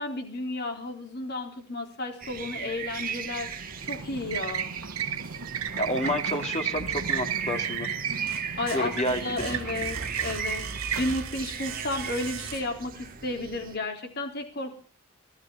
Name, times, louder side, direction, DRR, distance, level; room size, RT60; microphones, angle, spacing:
voice 1, 0.0-4.7 8.6-14.7, left 2 dB, 50° left, 4 dB, 4.0 m, -33 dB
sound 1, 2.2-13.8, right 7 dB, 40° right, 1.6 m, -37 dB
sound 2, 3.0-12.4, right 7 dB, 85° right, 1.3 m, -34 dB
voice 2, 5.8-7.9 8.7-9.2, left 1 dB, 30° left, 4 dB, 2.7 m, -29 dB
sound 3, 6.7-7.6 8.0-13.0, right 5 dB, 70° right, 1.8 m, -39 dB
16.5 x 13.5 x 5.7 m, 0.40 s
head